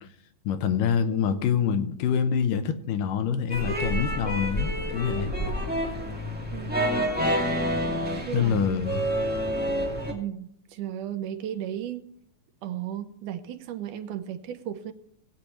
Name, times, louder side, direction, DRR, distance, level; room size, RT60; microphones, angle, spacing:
voice 1, 0.5-5.3 8.3-9.0, left 7 dB, 80° left, 2.4 m, -26 dB
voice 2, 1.1-1.6 6.5-7.1 8.2-8.8 10.1-12.0 12.6-14.9, right 11 dB, 75° right, 2.2 m, -35 dB
sound 1, 3.5-10.1, equal, 10° right, 0.6 m, -28 dB
19.5 x 8.4 x 3.1 m
omnidirectional pair, 3.9 m